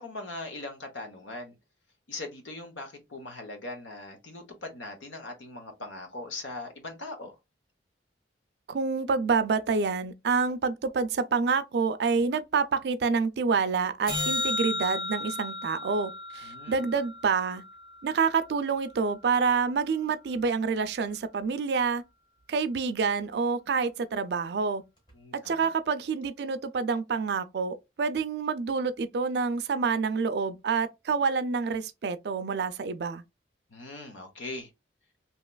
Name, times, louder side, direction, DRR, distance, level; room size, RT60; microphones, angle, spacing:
voice 1, 0.0-1.6 2.1-7.4 16.4-16.8 25.1-25.7 33.7-34.7, left 2 dB, 90° left, 0.9 m, -40 dB
voice 2, 8.7-17.6 18.0-22.0 22.5-24.8 25.3-33.2, right 5 dB, 60° right, 0.4 m, -27 dB
sound 1, 14.1-18.5 25.1-25.2, left 2 dB, 25° left, 1.2 m, -34 dB
3.1 x 2.8 x 2.2 m
head